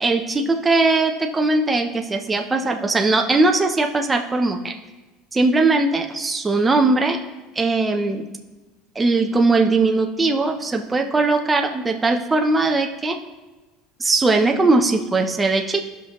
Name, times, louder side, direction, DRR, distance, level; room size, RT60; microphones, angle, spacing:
voice 1, 0.0-4.7 5.3-7.2 7.6-8.3 9.0-13.2 14.0-15.8, right 3 dB, 10° right, 3 dB, 0.5 m, -19 dB
15.0 x 5.9 x 2.9 m, 1.1 s
cardioid pair, 175°, 0 cm